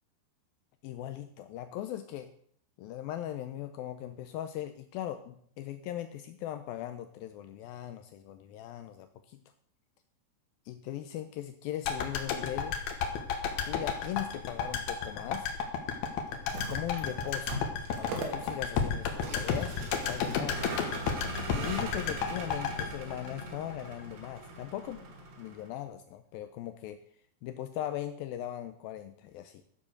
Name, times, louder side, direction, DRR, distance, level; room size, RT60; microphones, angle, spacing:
voice 1, 0.8-2.3 2.8-9.4 10.7-12.8 13.7-15.5 16.5-17.6 18.0-20.6 21.5-25.1 25.4-27.0 27.4-29.6, left 12 dB, 90° left, 9 dB, 2.0 m, -39 dB
sound 1, 11.8-24.0 24.3-24.4, left 6 dB, 70° left, 3.2 m, -33 dB
Vehicle, 16.3-25.7, right 2 dB, 75° right, 4.5 m, -41 dB
13.0 x 7.2 x 6.4 m, 0.62 s
omnidirectional pair, 5.1 m